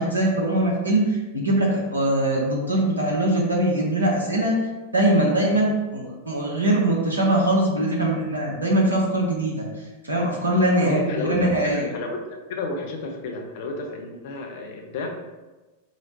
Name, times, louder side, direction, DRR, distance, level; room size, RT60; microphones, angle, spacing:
voice 1, 0.0-4.6 4.9-9.6 10.0-11.9, right 1 dB, 80° right, -2 dB, 0.8 m, -22 dB
voice 2, 10.8-11.5 11.7-12.2 12.5-15.1, left 3 dB, 50° left, 3 dB, 0.6 m, -31 dB
5.0 x 2.0 x 2.8 m, 1.1 s
figure-of-eight pair, 90°, 0 cm